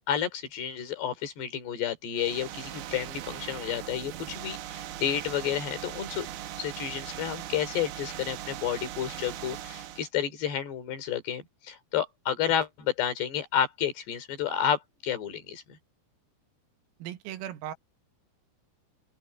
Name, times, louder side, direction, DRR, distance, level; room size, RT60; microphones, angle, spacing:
voice 1, 0.1-6.3 6.6-15.8, left 9 dB, 60° left, 5.0 m, -31 dB
sound 1, 2.1-10.1, right 12 dB, 70° right, 2.5 m, -40 dB
voice 2, 17.0-17.7, right 11 dB, 90° right, 4.3 m, -37 dB
open air
omnidirectional pair, 5.9 m